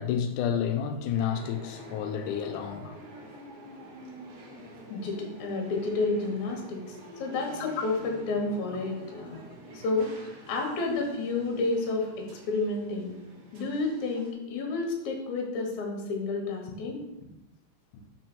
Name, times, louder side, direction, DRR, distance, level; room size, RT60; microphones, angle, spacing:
voice 1, 0.0-3.0, left 8 dB, 90° left, 2.2 m, -30 dB
sound 1, 1.1-14.3, right 1 dB, 85° right, 0.8 m, -47 dB
voice 2, 4.9-9.4 9.7-10.1 10.5-13.2 13.5-17.0, left 3 dB, 75° left, 2.6 m, -30 dB
5.1 x 4.6 x 6.0 m
omnidirectional pair, 3.5 m